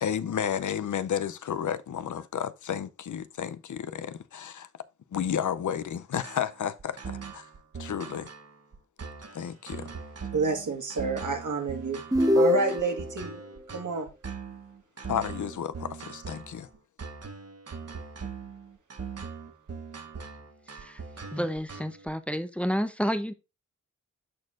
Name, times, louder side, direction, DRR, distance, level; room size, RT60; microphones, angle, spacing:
voice 1, 0.0-4.7 5.1-7.5 7.8-8.3 9.3-9.9 15.1-16.7, left 8 dB, 80° left, 0.5 m, -32 dB
sound 1, 6.2-22.1, right 5 dB, 55° right, 1.1 m, -41 dB
voice 2, 10.3-12.0 12.3-13.4 13.7-14.1, right 3 dB, 85° right, 1.6 m, -29 dB
sound 2, 12.1-13.1, equal, 10° right, 1.1 m, -23 dB
voice 3, 21.3-23.3, equal, 5° left, 0.7 m, -30 dB
12.5 x 4.3 x 2.5 m
wide cardioid pair, 85°, 30 cm